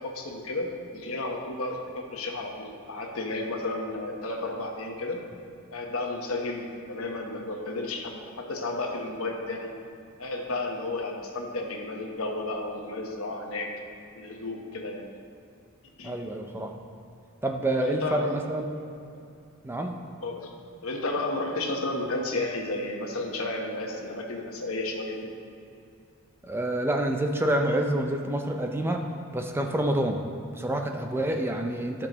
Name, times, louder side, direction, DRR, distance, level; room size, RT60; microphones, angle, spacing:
voice 1, 0.0-5.2 5.7-9.7 10.2-13.7 14.1-15.1 16.0-16.1 17.7-18.4 19.1-19.3 20.2-20.5 20.8-25.3, left 2 dB, 70° left, 1 dB, 1.1 m, -32 dB
voice 2, 16.0-16.7 17.4-18.7 19.6-19.9 26.4-29.0 29.3-30.2 30.5-32.1, right 1 dB, 10° right, 3 dB, 0.4 m, -27 dB
13.0 x 6.0 x 3.0 m, 2.5 s
head